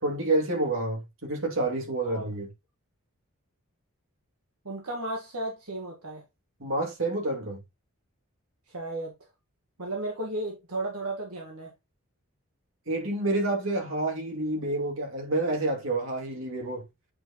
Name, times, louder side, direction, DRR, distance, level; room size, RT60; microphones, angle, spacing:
voice 1, 0.0-2.5 6.6-7.6 12.9-16.8, right 2 dB, 65° right, 2.5 m, -28 dB
voice 2, 4.6-6.2 8.7-9.1 9.8-11.7, right 2 dB, 85° right, 1.6 m, -34 dB
8.6 x 4.5 x 3.0 m
head